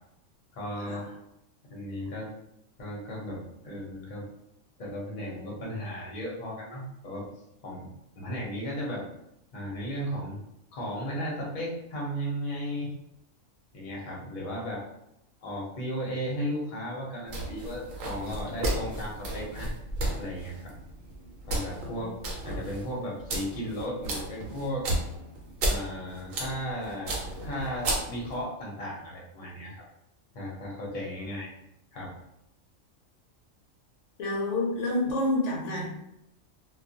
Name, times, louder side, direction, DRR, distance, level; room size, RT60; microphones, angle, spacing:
voice 1, 0.5-1.1 1.6-2.3 2.8-4.3 4.8-7.3 7.6-9.1 9.5-10.4 10.7-12.9 13.7-14.8 15.4-19.7 20.2-20.7 21.5-22.1 22.4-24.9 25.6-27.2 27.4-29.8 30.3-31.5 31.9-32.1, equal, 45° left, -3 dB, 0.7 m, -35 dB
sound 1, 17.3-28.4, right 1 dB, 85° right, 1.0 m, -34 dB
voice 2, 34.2-35.9, left 2 dB, 70° left, -3 dB, 0.9 m, -28 dB
2.3 x 2.2 x 2.6 m, 0.82 s
omnidirectional pair, 1.3 m